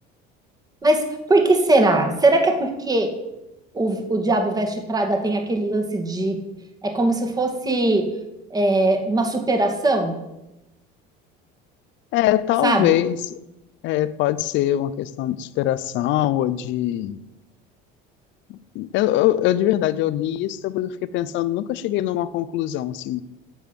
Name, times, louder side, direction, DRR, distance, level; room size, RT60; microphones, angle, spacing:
voice 1, 1.3-3.1 3.7-6.4 6.8-8.1 8.5-10.2 12.6-13.0, right 2 dB, 20° right, 4 dB, 2.0 m, -20 dB
voice 2, 12.1-13.3 13.8-17.2 18.5-23.2, left 13 dB, 65° left, 16 dB, 0.8 m, -23 dB
10.5 x 7.3 x 8.3 m, 0.95 s
cardioid pair, 125°, 21 cm